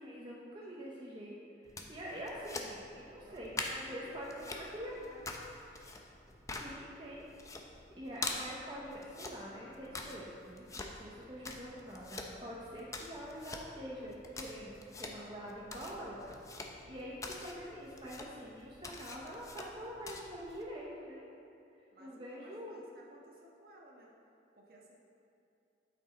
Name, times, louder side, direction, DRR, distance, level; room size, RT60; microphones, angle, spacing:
voice 1, 0.0-1.3 1.6-5.0 6.6-7.3 8.0-16.2 16.9-21.3 22.0-22.8, equal, 25° right, -5 dB, 0.8 m, -45 dB
voice 2, 0.6-1.0 2.3-2.5 3.2-5.3 21.9-24.1 24.5-24.9, equal, 50° right, -2 dB, 1.3 m, -58 dB
sound 1, 1.6-20.6, left 2 dB, 15° left, 0.5 m, -46 dB
8.9 x 6.2 x 4.2 m, 2.6 s
head